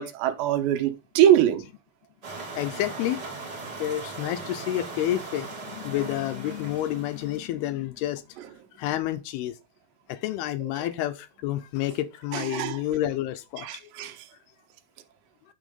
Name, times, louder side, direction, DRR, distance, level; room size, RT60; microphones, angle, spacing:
voice 1, 0.0-1.6 12.3-12.8 13.6-14.1, right 10 dB, 85° right, 3.1 m, -23 dB
sound 1, 2.2-7.5, right 3 dB, 30° right, 2.3 m, -39 dB
voice 2, 2.6-3.2 3.8-8.2 8.8-9.6 10.1-13.7, left 13 dB, 80° left, 2.4 m, -29 dB
9.1 x 4.5 x 5.1 m
omnidirectional pair, 5.0 m